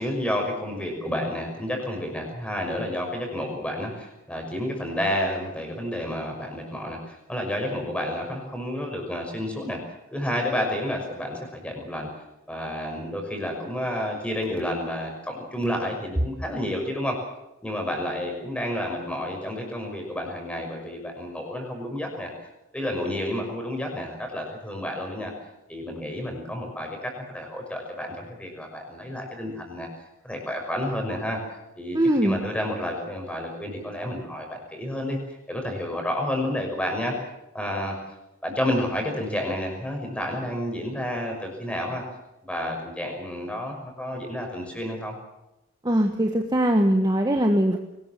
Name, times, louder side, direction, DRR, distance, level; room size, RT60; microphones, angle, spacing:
voice 1, 0.0-9.8 10.1-12.1 12.5-17.2 17.6-22.3 22.7-25.3 25.7-29.9 30.2-31.4 31.8-35.2 35.5-37.1 37.5-38.0 38.4-42.0 42.5-45.2, left 1 dB, 5° left, 2 dB, 6.0 m, -30 dB
voice 2, 31.9-32.4 45.8-47.8, right 1 dB, 20° right, 4 dB, 1.4 m, -21 dB
23.5 x 19.5 x 7.6 m, 0.91 s
head